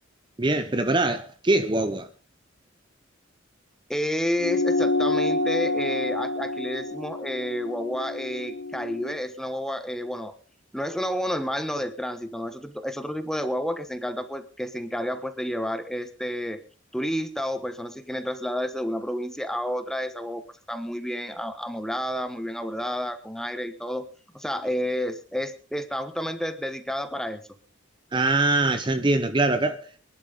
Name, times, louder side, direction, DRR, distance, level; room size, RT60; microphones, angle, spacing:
voice 1, 0.4-2.1 28.1-30.0, right 2 dB, 25° right, 0.8 m, -23 dB
voice 2, 3.9-10.3 10.7-16.6 16.9-24.1 24.3-27.4, equal, ahead, 1.2 m, -30 dB
sound 1, 4.4-9.2, left 2 dB, 65° left, 1.1 m, -28 dB
23.5 x 11.5 x 3.6 m
head